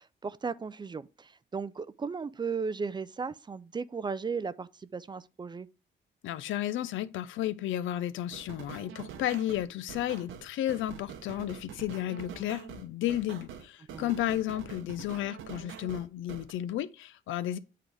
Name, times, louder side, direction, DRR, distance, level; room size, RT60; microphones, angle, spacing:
voice 1, 0.0-5.7 13.9-14.2, right 5 dB, 20° right, 0.4 m, -36 dB
voice 2, 6.2-17.6, left 13 dB, 80° left, 0.5 m, -33 dB
sound 1, 8.3-16.5, right 8 dB, 80° right, 0.9 m, -45 dB
8.3 x 3.7 x 3.4 m
cardioid pair, 90°, 20 cm